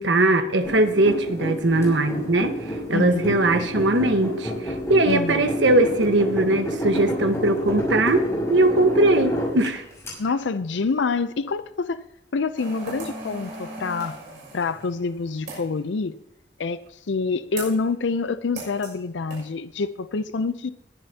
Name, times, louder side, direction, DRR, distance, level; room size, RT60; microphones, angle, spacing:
voice 1, 0.0-2.5 2.9-9.8, right 2 dB, 90° right, 7 dB, 1.3 m, -20 dB
sound 1, 0.6-10.1, equal, 15° left, 5.5 m, -29 dB
voice 2, 2.9-3.3 5.0-5.5 10.2-12.0 12.3-14.2 14.5-16.2 16.6-20.7, left 4 dB, 85° left, 13 dB, 0.5 m, -27 dB
sound 2, 12.6-15.8 17.6-17.8 18.6-19.0 19.3-19.4, right 2 dB, 70° right, 6.4 m, -38 dB
20.5 x 11.0 x 2.8 m, 0.80 s
head